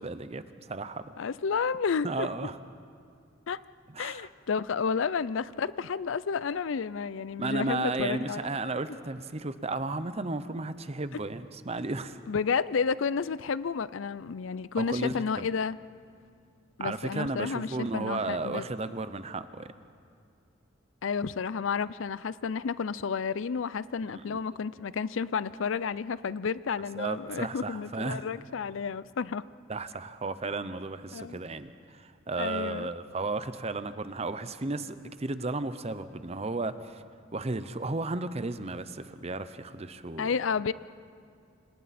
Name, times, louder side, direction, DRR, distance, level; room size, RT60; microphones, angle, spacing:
voice 1, 0.0-1.0 2.0-2.6 3.9-4.3 7.4-12.2 14.7-15.5 16.8-19.7 24.1-24.4 27.0-28.3 29.7-37.0 37.3-40.4, right 3 dB, 30° right, 12 dB, 0.8 m, -34 dB
voice 2, 1.2-2.3 3.5-3.6 4.0-8.5 11.1-11.2 12.3-15.8 16.8-18.6 21.0-29.4 31.1-31.4 32.4-32.9 40.2-40.7, left 5 dB, 75° left, 17 dB, 0.5 m, -31 dB
29.0 x 26.0 x 4.3 m, 2.3 s
head